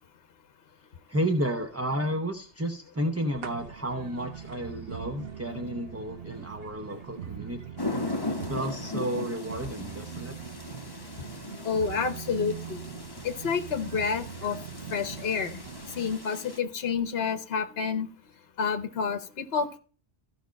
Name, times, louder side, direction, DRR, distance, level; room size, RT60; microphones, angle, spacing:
voice 1, 1.1-7.6 8.4-10.4, equal, 15° right, 6 dB, 0.7 m, -32 dB
sound 1, 3.3-16.2, right 9 dB, 60° right, 1.0 m, -42 dB
sound 2, 7.8-16.6, left 2 dB, 20° left, 1.2 m, -38 dB
voice 2, 11.6-12.9 13.2-14.6 14.9-15.6 15.9-18.1 18.6-19.8, left 6 dB, 65° left, 9 dB, 1.1 m, -29 dB
15.0 x 5.1 x 5.2 m, 0.39 s
omnidirectional pair, 1.2 m